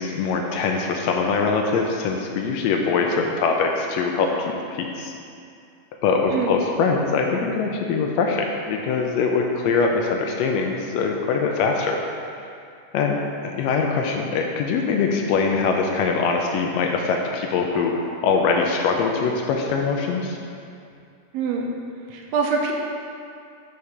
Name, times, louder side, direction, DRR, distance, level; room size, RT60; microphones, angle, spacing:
voice 1, 0.0-5.1 6.0-12.0 12.9-17.9 18.2-20.4, left 4 dB, 85° left, 1 dB, 1.5 m, -23 dB
voice 2, 21.3-21.7 22.1-22.7, right 5 dB, 80° right, 0 dB, 1.5 m, -24 dB
5.9 x 4.9 x 5.5 m, 2.5 s
omnidirectional pair, 3.5 m